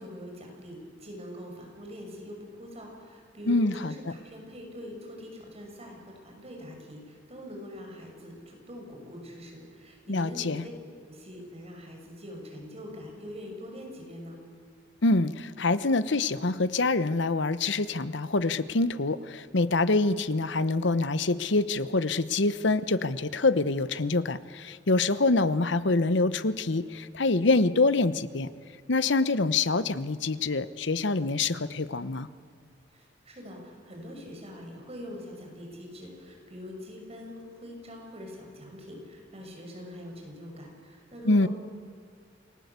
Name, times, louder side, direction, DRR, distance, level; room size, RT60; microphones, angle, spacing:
voice 1, 0.0-10.7 11.0-14.4 32.9-41.5, equal, 35° right, 1 dB, 6.2 m, -43 dB
voice 2, 3.5-3.9 10.1-10.6 15.0-28.5 28.9-32.3 41.3-41.5, left 3 dB, 65° left, 14 dB, 1.0 m, -25 dB
28.5 x 20.5 x 8.2 m, 2.1 s
head